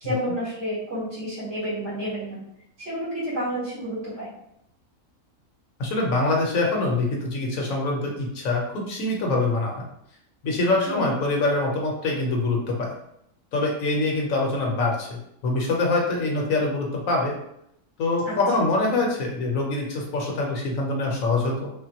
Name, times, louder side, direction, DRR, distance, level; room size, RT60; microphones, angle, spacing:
voice 1, 0.0-2.4 2.8-4.3 10.9-11.1 18.2-18.4, equal, 60° right, -9 dB, 2.0 m, -30 dB
voice 2, 5.8-9.8 10.4-12.9 13.5-17.3 18.0-21.7, left 2 dB, 85° left, 0 dB, 1.2 m, -24 dB
3.7 x 2.2 x 2.8 m, 0.76 s
omnidirectional pair, 1.4 m